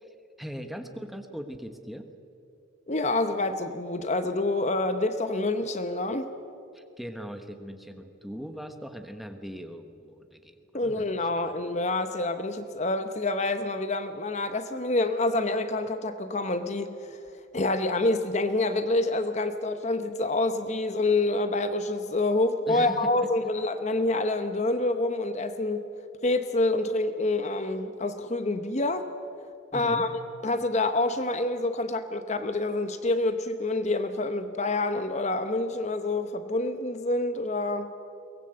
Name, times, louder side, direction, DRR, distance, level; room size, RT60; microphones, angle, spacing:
voice 1, 0.0-2.1 6.7-11.5 22.6-23.1 29.7-30.1, equal, ahead, 6 dB, 1.2 m, -40 dB
voice 2, 2.9-6.3 10.7-17.2 17.5-25.9 26.2-29.1 29.7-37.9, left 2 dB, 35° left, 9 dB, 0.9 m, -27 dB
22.5 x 18.5 x 7.9 m, 2.6 s
head